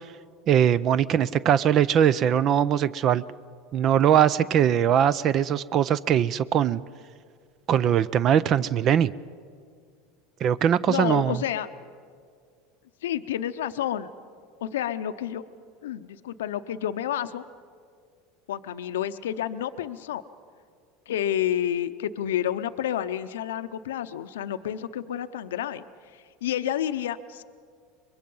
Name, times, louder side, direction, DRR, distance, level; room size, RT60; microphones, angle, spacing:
voice 1, 0.5-3.2 3.7-6.8 7.7-9.1 10.4-11.4, right 9 dB, 45° right, 19 dB, 0.4 m, -21 dB
voice 2, 10.9-11.7 13.0-14.1 14.6-15.4 15.8-17.4 18.5-20.2 21.1-25.8 26.1-27.4, left 11 dB, 90° left, 11 dB, 0.6 m, -29 dB
23.5 x 22.0 x 5.5 m, 2.1 s
supercardioid pair, 105°, 0 cm